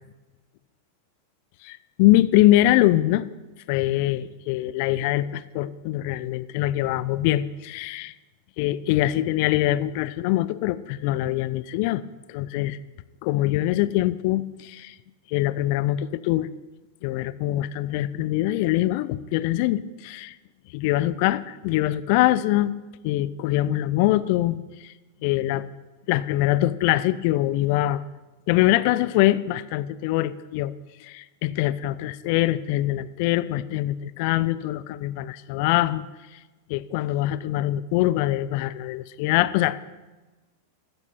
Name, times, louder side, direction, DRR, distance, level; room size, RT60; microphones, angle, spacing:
voice 1, 1.6-3.2 3.7-8.1 8.6-12.0 12.3-12.8 13.2-14.9 15.3-16.5 17.0-20.3 20.7-22.7 23.0-24.9 25.2-25.6 26.1-28.0 28.5-30.7 31.0-36.1 36.7-39.9, left 15 dB, 50° left, 17 dB, 0.6 m, -23 dB
14.5 x 14.5 x 4.4 m, 1.2 s
figure-of-eight pair, 90°, 0 cm